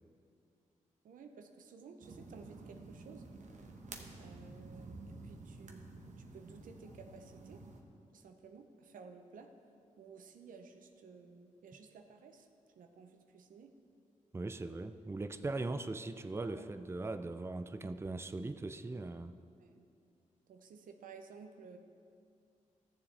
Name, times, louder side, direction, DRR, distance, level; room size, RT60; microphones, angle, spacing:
voice 1, 1.0-3.3 4.2-5.8 6.3-7.7 8.1-9.5 10.0-12.5 12.7-13.8 15.4-15.7 16.4-16.7 19.6-19.9 20.5-21.8, right 5 dB, 90° right, 6 dB, 0.7 m, -54 dB
sound 1, 2.0-7.8, right 3 dB, 65° right, 1.1 m, -51 dB
voice 2, 14.3-19.4, right 2 dB, 20° right, 10 dB, 0.4 m, -40 dB
14.0 x 7.1 x 3.4 m, 2.4 s
cardioid pair, 55°, 14 cm